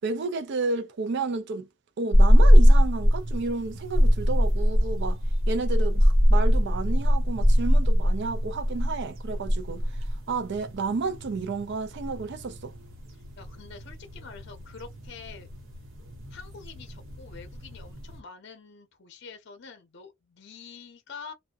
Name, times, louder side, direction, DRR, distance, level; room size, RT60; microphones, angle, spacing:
voice 1, 0.0-1.7 2.0-5.2 5.5-9.9 10.3-12.7, right 4 dB, 55° right, 0.4 m, -31 dB
sound 1, 2.1-18.2, equal, 80° right, 0.8 m, -23 dB
voice 2, 13.1-15.5 16.3-21.3, left 5 dB, 55° left, 0.6 m, -46 dB
2.6 x 2.1 x 2.2 m
head